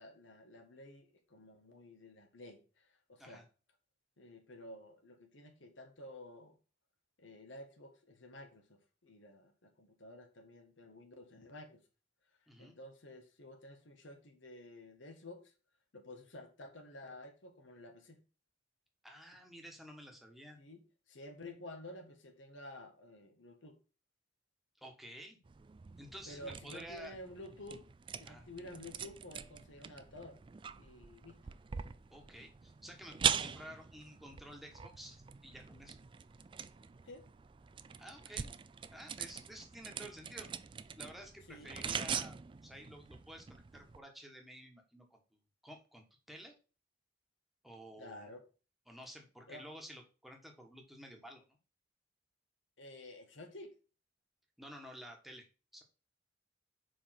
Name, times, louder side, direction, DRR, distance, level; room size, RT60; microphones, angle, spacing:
voice 1, 0.0-3.4 4.2-6.6 7.2-11.8 12.6-15.5 15.9-18.2 20.6-23.8 26.3-27.9 28.2-30.4 30.8-31.4 37.0-37.2 41.5-41.7 48.0-48.4 49.5-49.7 52.8-53.7, left 1 dB, 85° left, 4 dB, 1.4 m, -51 dB
voice 2, 12.5-12.8 19.0-20.6 24.8-25.4 26.0-27.1 28.3-28.4 32.1-36.0 38.0-38.5 38.9-40.5 41.0-42.4 42.6-45.2 45.6-46.5 47.6-48.3 48.9-51.4 54.6-55.5 55.7-55.8, equal, ahead, 2 dB, 1.3 m, -51 dB
sound 1, 25.4-44.0, right 7 dB, 25° right, 0.3 m, -42 dB
5.0 x 4.9 x 5.8 m, 0.33 s
head